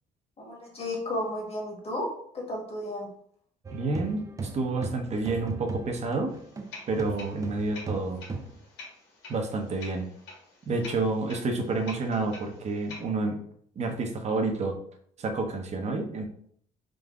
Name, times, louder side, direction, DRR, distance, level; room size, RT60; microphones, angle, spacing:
voice 1, 0.4-3.1, left 1 dB, 35° left, -2 dB, 1.7 m, -33 dB
sound 1, 3.6-6.7 7.0-8.6, right 3 dB, 20° right, 0.4 m, -37 dB
voice 2, 3.7-6.3 6.9-8.2 9.3-10.1 10.7-13.4 13.8-14.8 15.2-16.3, right 3 dB, 40° right, 3 dB, 0.9 m, -29 dB
sound 2, 6.3-13.0, left 3 dB, 85° left, 1.7 m, -47 dB
3.8 x 2.7 x 3.6 m, 0.62 s
cardioid pair, 110°, 17 cm